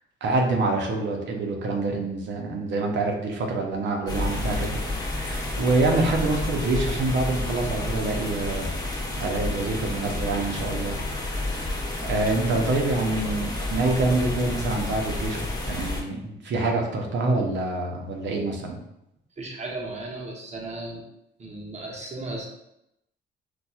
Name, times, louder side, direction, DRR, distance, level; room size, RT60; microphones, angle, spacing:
voice 1, 0.2-8.7 9.2-11.7 12.0-18.8, right 2 dB, 65° right, 1 dB, 0.7 m, -26 dB
sound 1, 4.1-16.0, left 2 dB, 20° left, 0.8 m, -30 dB
voice 2, 19.4-21.0 21.4-22.5, right 2 dB, 35° right, -2 dB, 0.9 m, -35 dB
4.1 x 2.3 x 2.3 m, 0.83 s
cardioid pair, 90°, 20 cm